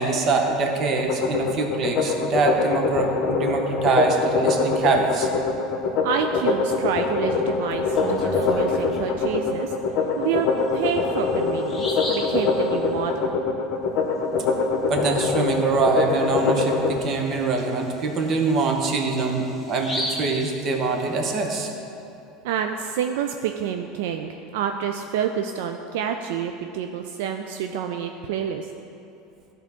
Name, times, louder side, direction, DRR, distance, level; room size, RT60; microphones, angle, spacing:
voice 1, 0.0-5.3 14.9-21.7, right 3 dB, 45° right, 3 dB, 0.9 m, -24 dB
sound 1, 1.0-17.0, left 4 dB, 55° left, 0.7 m, -24 dB
voice 2, 6.0-9.7 10.2-10.5 10.7-13.3 22.4-28.7, right 8 dB, 80° right, 5 dB, 0.3 m, -28 dB
Bird vocalization bird call bird song, 7.7-9.2 10.7-10.8 11.2-11.3 11.7-12.4 15.8-16.0 16.4-16.5 17.0-21.2, left 1 dB, 5° left, 1.6 m, -34 dB
12.0 x 4.0 x 3.5 m, 2.7 s
supercardioid pair, 110°, 0 cm